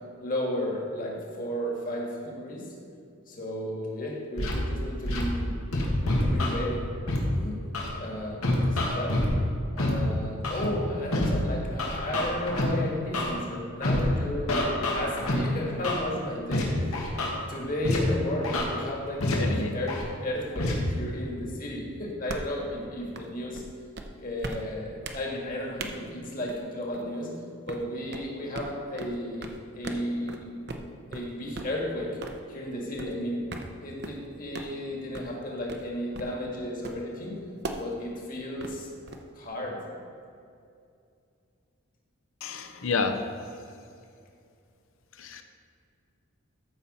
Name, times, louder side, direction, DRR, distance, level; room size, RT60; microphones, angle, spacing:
voice 1, 0.2-2.7 3.3-5.5 6.2-6.9 7.3-9.1 9.8-17.0 17.3-19.9 20.2-23.6 24.2-27.3 27.6-29.5 29.8-30.5 31.1-32.1 32.5-33.4 33.8-37.4 37.8-38.9 39.4-39.8, left 1 dB, 40° left, -2 dB, 1.7 m, -33 dB
Scratching (performance technique), 4.4-4.5 5.0-5.2 5.7-6.5 7.1-7.2 7.7-7.9 8.4-9.3 9.8-9.9 10.4-10.7 11.1-11.3 11.8-12.6 13.1-13.3 13.8-14.0 14.5-15.3 15.8-16.0 16.5-16.6 16.9-17.3 17.8-18.0 18.4-18.6 19.2-19.3 19.9-20.0 20.5-20.7, left 2 dB, 90° left, 1.8 m, -27 dB
voice 2, 19.4-19.7 42.4-43.2 45.2-45.4, left 4 dB, 70° left, 7 dB, 0.7 m, -29 dB
sound 1, 22.3-22.6 23.1-23.3 23.5-23.7 24.0-24.1 24.4-24.6 25.0-25.2 25.8-25.9 26.5-26.6 26.9-27.2 27.7-27.8 28.1-28.3 28.5-28.7 29.0-29.1 29.4-29.6 29.8-30.0 30.3-30.4 30.7-30.8 31.1-31.3 31.5-31.7 32.2-32.4 33.0-33.1 33.5-33.7 34.0-34.3 34.5-34.7 35.1-35.3 35.7-35.8 36.1-36.3 36.8-37.1 37.6-37.8 38.6-39.4, right 2 dB, 50° right, 0.7 m, -37 dB
13.5 x 5.7 x 4.2 m, 2.5 s
head